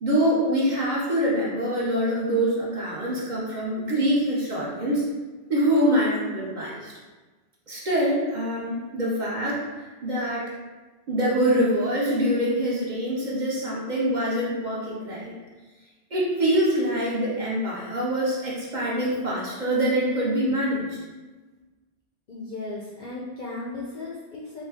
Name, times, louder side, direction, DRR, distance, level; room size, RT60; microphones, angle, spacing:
voice 1, 0.0-5.0 5.5-6.9 7.7-9.6 10.0-10.4 11.1-15.3 16.1-21.0, equal, 45° right, -6 dB, 0.8 m, -24 dB
voice 2, 22.3-24.6, left 2 dB, 60° left, -5 dB, 0.6 m, -36 dB
3.7 x 2.2 x 3.4 m, 1.2 s
omnidirectional pair, 1.2 m